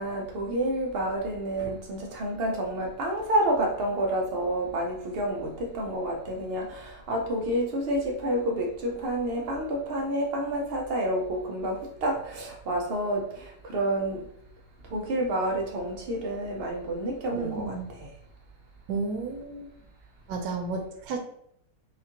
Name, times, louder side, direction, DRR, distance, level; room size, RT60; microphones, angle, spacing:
voice 1, 0.0-14.2 14.9-18.1, right 1 dB, 85° right, 0 dB, 0.5 m, -29 dB
voice 2, 17.3-17.9 18.9-19.7 20.3-21.2, right 4 dB, 65° right, 3 dB, 1.1 m, -32 dB
5.0 x 2.3 x 2.8 m, 0.71 s
omnidirectional pair, 1.9 m